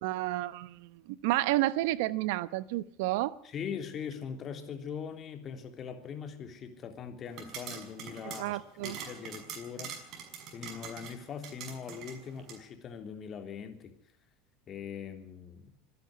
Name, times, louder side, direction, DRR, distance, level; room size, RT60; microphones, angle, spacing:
voice 1, 0.0-3.4 8.4-9.0, right 17 dB, 75° right, 0.9 m, -31 dB
voice 2, 3.4-10.0 10.5-13.9 14.7-15.7, left 7 dB, 40° left, 3.3 m, -41 dB
sound 1, 7.3-12.6, right 7 dB, 50° right, 6.2 m, -45 dB
25.0 x 10.5 x 9.7 m
supercardioid pair, 105°, 0 cm